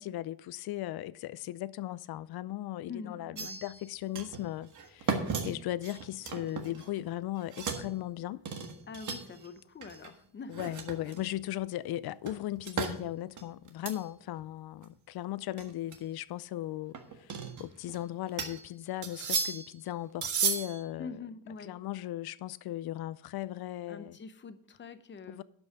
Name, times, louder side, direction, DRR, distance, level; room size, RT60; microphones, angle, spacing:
voice 1, 0.0-8.4 10.5-21.2 21.6-24.2 25.3-25.4, left 14 dB, 80° left, 0.5 m, -37 dB
voice 2, 2.9-3.6 8.9-10.7 21.0-21.8 23.9-25.4, left 5 dB, 30° left, 0.7 m, -45 dB
sound 1, 3.4-3.9 4.2-4.4 4.7-7.1 7.4-7.9 8.5-9.5 9.8-10.1 10.5-11.4 12.3-13.0 13.4-14.0 14.4-14.5 14.8-14.9 15.6-16.0 16.9-18.0 18.4-18.7 19.0-19.8 20.2-20.8, right 6 dB, 55° right, 1.6 m, -35 dB
12.0 x 5.4 x 6.6 m
cardioid pair, 175°, 37 cm